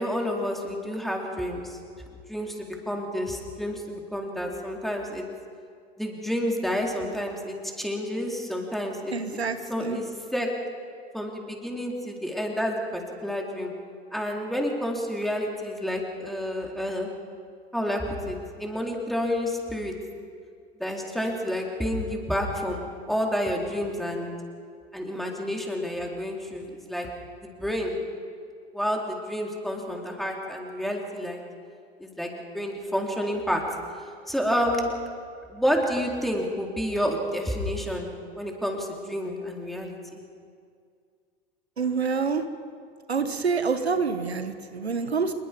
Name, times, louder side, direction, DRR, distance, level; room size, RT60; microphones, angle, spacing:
voice 1, 0.0-1.8 2.3-5.2 6.0-9.4 9.7-10.1 10.3-10.5 11.1-13.7 14.1-17.1 17.7-19.9 20.8-24.3 24.9-27.1 27.4-28.0 28.7-31.4 32.0-33.6 34.3-34.9 35.5-40.2, equal, ahead, 0 dB, 4.0 m, -29 dB
voice 2, 9.1-10.0 41.8-42.5 43.1-45.3, right 5 dB, 90° right, 9 dB, 1.2 m, -27 dB
26.5 x 22.0 x 5.4 m, 2.2 s
figure-of-eight pair, 80°, 31 cm